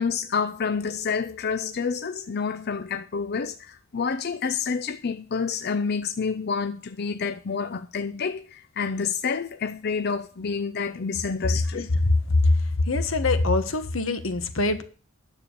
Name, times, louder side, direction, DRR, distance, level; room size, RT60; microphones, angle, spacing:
voice 1, 0.0-11.9, left 5 dB, 55° left, 0.6 m, -28 dB
voice 2, 12.9-14.8, left 2 dB, 85° left, 1.4 m, -24 dB
10.0 x 6.9 x 6.7 m
head